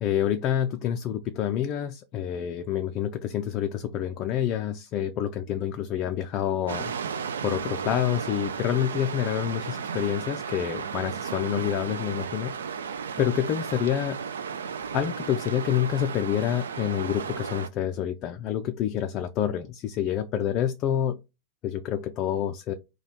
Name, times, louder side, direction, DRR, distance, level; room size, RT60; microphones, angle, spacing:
voice 1, 0.0-6.9 7.4-14.2 14.9-21.2 21.6-22.7, left 10 dB, 35° left, 0.3 m, -28 dB
sound 1, 6.7-17.7, right 6 dB, 65° right, 0.3 m, -34 dB
3.1 x 2.3 x 4.0 m
figure-of-eight pair, 90°, 0 cm